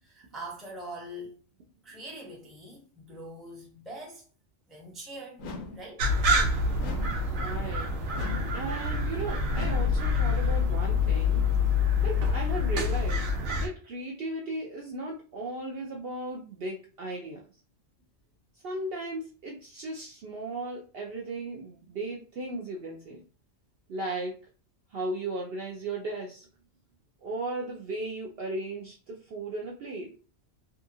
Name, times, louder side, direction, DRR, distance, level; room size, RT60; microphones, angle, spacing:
voice 1, 0.0-1.3 1.8-4.3 4.7-5.4 5.7-6.0, right 1 dB, ahead, 0.5 m, -43 dB
sound 1, 5.4-5.9 6.8-7.3 8.1-8.6 9.5-10.0, left 3 dB, 90° left, 1.0 m, -40 dB
sound 2, 6.0-13.7, left 3 dB, 85° right, 1.0 m, -26 dB
voice 2, 7.3-7.9 8.5-11.4 12.0-13.3 13.6-17.4 18.6-23.2 23.9-24.4 24.9-26.5 27.2-30.1, right 2 dB, 65° right, 0.6 m, -36 dB
2.7 x 2.4 x 2.6 m
omnidirectional pair, 1.3 m